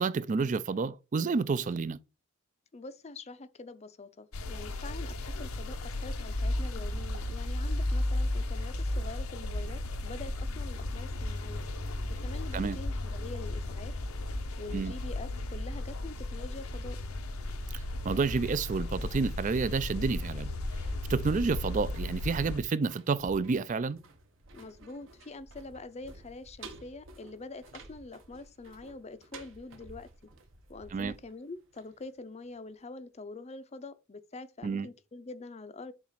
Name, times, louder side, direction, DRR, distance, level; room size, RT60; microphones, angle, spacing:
voice 1, 0.0-2.0 12.5-12.8 14.7-14.9 17.7-20.5 21.1-24.0 30.9-31.1 34.6-34.9, right 4 dB, 35° right, 0.4 m, -30 dB
voice 2, 2.7-11.6 12.1-13.9 14.6-17.0 24.5-30.1 30.7-35.9, left 3 dB, 30° left, 0.5 m, -45 dB
sound 1, 4.3-22.6, left 1 dB, 90° left, 0.9 m, -34 dB
sound 2, 21.7-32.5 32.8-32.9, right 3 dB, 60° right, 1.1 m, -52 dB
7.2 x 2.5 x 5.6 m
head